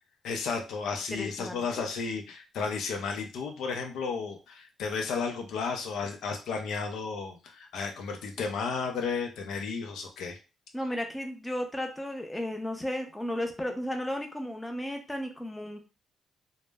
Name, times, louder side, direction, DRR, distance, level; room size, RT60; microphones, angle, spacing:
voice 1, 0.2-10.4, left 5 dB, 80° left, 4 dB, 0.5 m, -33 dB
voice 2, 1.1-1.9 10.7-15.8, left 1 dB, 10° left, 4 dB, 0.5 m, -34 dB
2.0 x 2.0 x 3.3 m, 0.30 s
cardioid pair, 90°, 0 cm